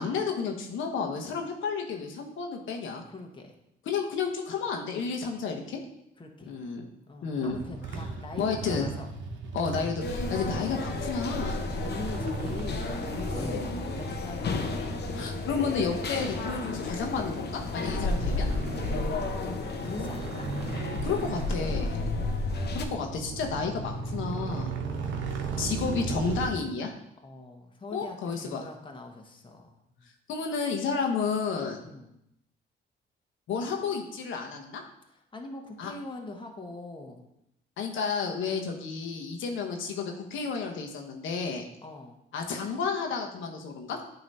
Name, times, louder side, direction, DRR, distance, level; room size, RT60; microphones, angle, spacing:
voice 1, 0.0-3.0 3.9-5.8 6.5-6.9 7.2-7.6 8.4-8.9 9.5-11.6 13.4-13.7 15.1-18.5 21.0-22.0 22.7-24.8 25.6-26.9 27.9-28.6 30.3-31.8 33.5-34.8 35.8-35.9 37.8-41.7 42.3-44.0, left 5 dB, 75° left, 2 dB, 1.2 m, -31 dB
voice 2, 3.1-3.5 6.2-6.5 7.1-9.1 11.8-15.0 19.8-20.5 21.9-22.8 24.6-25.1 27.2-30.1 31.8-32.1 35.1-37.2 41.8-42.2, left 2 dB, 25° left, 2 dB, 1.1 m, -43 dB
sound 1, 7.5-26.5, right 4 dB, 70° right, 1.0 m, -37 dB
sound 2, 10.0-22.8, left 3 dB, 55° left, 0.9 m, -32 dB
9.1 x 3.1 x 5.4 m, 0.81 s
cardioid pair, 90°, 20 cm